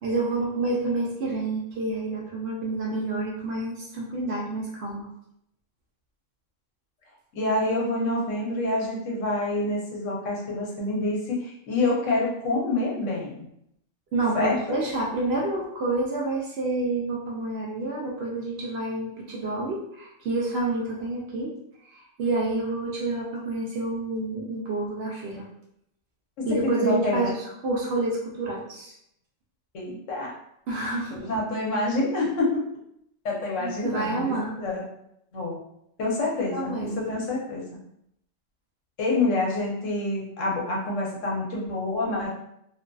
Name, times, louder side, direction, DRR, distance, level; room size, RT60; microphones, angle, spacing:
voice 1, 0.0-5.1 14.1-21.5 21.8-25.5 26.4-27.4 27.6-28.9 30.7-31.3 33.6-34.6 36.5-37.0, right 2 dB, 65° right, -2 dB, 0.7 m, -28 dB
voice 2, 7.3-13.4 14.3-14.8 26.4-27.3 29.7-30.3 31.1-32.6 33.2-34.8 35.3-35.6 36.0-37.6 39.0-42.3, left 2 dB, 75° left, -2 dB, 1.0 m, -27 dB
2.5 x 2.4 x 2.2 m, 0.76 s
omnidirectional pair, 1.3 m